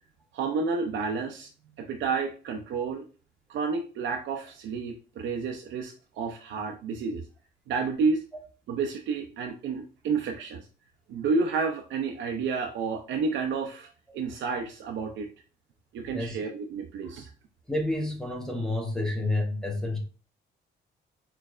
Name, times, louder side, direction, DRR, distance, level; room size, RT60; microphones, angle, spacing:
voice 1, 0.3-1.5 1.8-3.0 3.5-7.2 7.7-8.2 8.7-10.7 11.1-13.9 14.1-15.3 15.9-17.3, right 4 dB, 75° right, 0.6 m, -30 dB
voice 2, 17.7-20.0, left 2 dB, 5° left, 1.0 m, -29 dB
4.2 x 3.2 x 2.4 m
cardioid pair, 90°, 20 cm